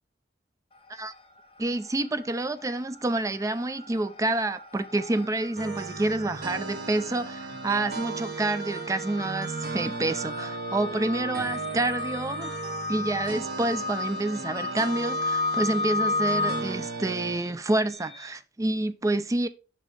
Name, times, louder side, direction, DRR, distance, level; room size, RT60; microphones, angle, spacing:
sound 1, 0.8-1.4 1.7-18.3, left 3 dB, 30° left, 0.9 m, -34 dB
voice 1, 1.6-12.6 12.9-19.5, right 2 dB, 20° right, 0.4 m, -28 dB
sound 2, 5.6-17.4, right 4 dB, 65° right, 1.6 m, -36 dB
6.2 x 5.4 x 3.4 m
head